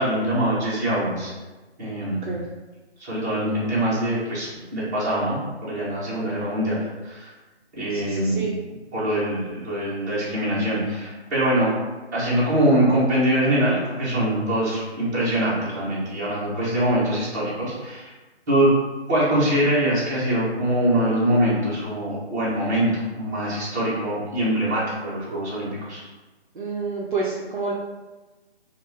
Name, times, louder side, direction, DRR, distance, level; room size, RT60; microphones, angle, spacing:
voice 1, 0.0-1.3 1.8-2.3 3.0-7.3 7.7-8.4 8.9-11.7 12.1-18.1 18.5-18.8 19.1-26.0, right 1 dB, 15° right, -10 dB, 0.7 m, -23 dB
voice 2, 7.9-8.6 26.5-27.7, right 4 dB, 50° right, -3 dB, 0.5 m, -29 dB
2.7 x 2.2 x 3.2 m, 1.2 s
figure-of-eight pair, 150°, 32 cm